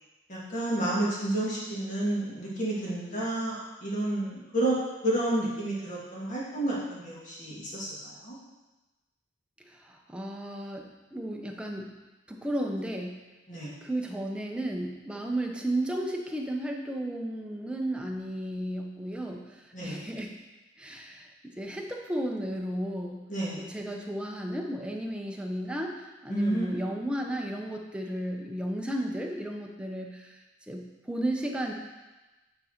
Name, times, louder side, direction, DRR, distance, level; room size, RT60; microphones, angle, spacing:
voice 1, 0.3-4.7 5.0-8.4 13.5-13.7 19.7-20.0 23.3-23.6 26.3-26.8, right 1 dB, 45° left, -6 dB, 2.1 m, -30 dB
voice 2, 9.6-11.9 12.3-13.2 13.8-20.3 20.8-23.3 23.6-30.4 30.7-31.7, right 1 dB, 5° right, 1 dB, 0.6 m, -34 dB
8.9 x 3.9 x 4.4 m, 1.1 s
head